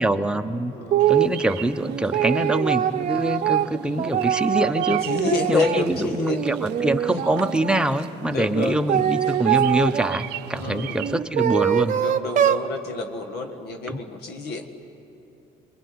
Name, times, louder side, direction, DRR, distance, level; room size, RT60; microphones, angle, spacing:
voice 1, 0.0-0.7 1.1-5.0 5.5-12.0 13.9-14.0, right 1 dB, 5° right, 6 dB, 0.9 m, -24 dB
voice 2, 0.7-1.1 5.1-6.4 7.1-7.2 8.3-8.8 10.5-11.0 11.9-14.7, left 3 dB, 70° left, 5 dB, 1.7 m, -28 dB
sound 1, 0.9-1.3 1.8-5.9 6.3-7.8 8.5-10.2 11.0-12.7, right 10 dB, 50° right, 0.8 m, -23 dB
Bird vocalization bird call bird song, 1.0-11.1, right 14 dB, 85° right, 0.6 m, -40 dB
26.5 x 22.5 x 9.6 m, 2.9 s
cardioid pair, 110°, 17 cm